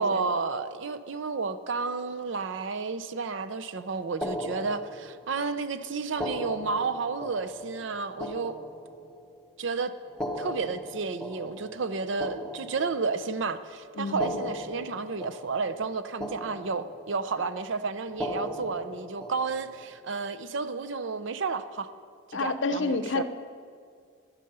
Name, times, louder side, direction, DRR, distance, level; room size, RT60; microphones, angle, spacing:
voice 1, 0.0-8.6 9.6-9.9 10.4-21.9 22.3-23.2, right 4 dB, 60° right, 12 dB, 0.6 m, -31 dB
sound 1, 4.2-5.4 6.1-9.4 10.1-13.4 14.1-15.9 16.2-17.3 18.1-19.9, equal, 5° left, 0.9 m, -38 dB
voice 2, 14.0-14.4 22.3-23.2, left 3 dB, 60° left, 10 dB, 0.6 m, -29 dB
12.5 x 10.5 x 5.5 m, 2.2 s
head